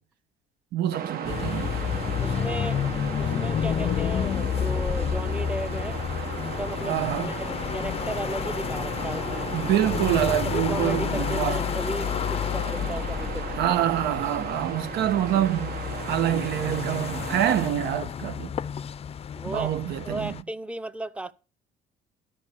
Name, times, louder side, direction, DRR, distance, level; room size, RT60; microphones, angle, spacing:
voice 1, 0.7-1.9 6.8-7.3 9.5-11.6 13.6-15.7 16.1-18.5 19.5-20.3, right 11 dB, 75° right, 1.0 m, -26 dB
sound 1, 0.9-17.7, right 7 dB, 60° right, 1.3 m, -36 dB
sound 2, 1.2-20.4, left 8 dB, 35° left, 0.5 m, -30 dB
voice 2, 2.2-2.8 3.2-6.0 6.3-9.5 10.4-13.5 19.3-19.8 20.0-21.3, right 1 dB, 5° right, 0.7 m, -35 dB
12.5 x 5.4 x 6.9 m
cardioid pair, 110°, 17 cm